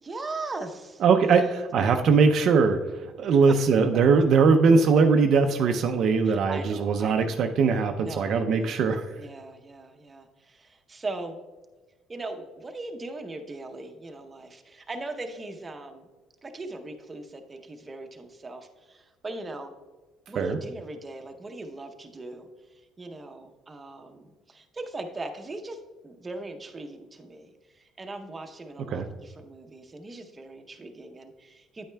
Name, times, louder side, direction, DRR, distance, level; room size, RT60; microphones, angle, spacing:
voice 1, 0.0-1.4 1.7-1.9 3.3-3.4 6.2-7.4 8.0-8.7 9.2-11.4 12.1-16.1 16.4-19.7 20.3-31.9, right 2 dB, 20° right, 5 dB, 0.7 m, -39 dB
voice 2, 1.0-9.1 20.4-20.6 28.9-29.1, right 5 dB, 55° right, 5 dB, 0.5 m, -21 dB
9.4 x 8.9 x 2.2 m, 1.3 s
cardioid pair, 120°, 0 cm